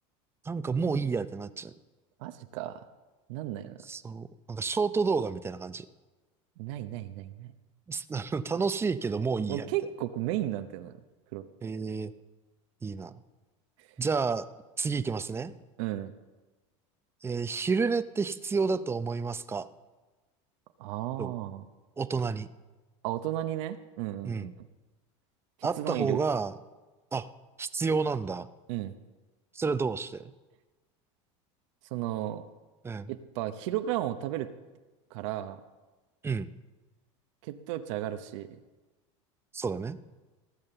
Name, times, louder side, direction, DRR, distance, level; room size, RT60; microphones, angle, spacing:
voice 1, 0.4-1.7 3.8-5.9 7.9-9.7 11.6-12.1 12.8-13.1 14.0-14.5 14.8-15.5 17.2-19.7 21.2-21.3 22.0-22.5 24.2-24.5 25.6-26.5 27.1-27.3 27.6-28.5 29.5-30.3 32.8-33.1 36.2-36.5 39.5-40.0, right 4 dB, 15° right, 13 dB, 0.6 m, -30 dB
voice 2, 2.2-2.8 3.3-3.8 6.6-7.5 9.5-10.9 11.3-11.4 15.8-16.1 20.8-21.6 23.0-24.5 25.8-26.2 28.7-28.9 31.9-32.4 33.1-34.5 35.1-35.6 37.4-38.5, right 13 dB, 75° right, 9 dB, 0.8 m, -33 dB
16.5 x 7.3 x 6.8 m, 1.2 s
supercardioid pair, 115°, 16 cm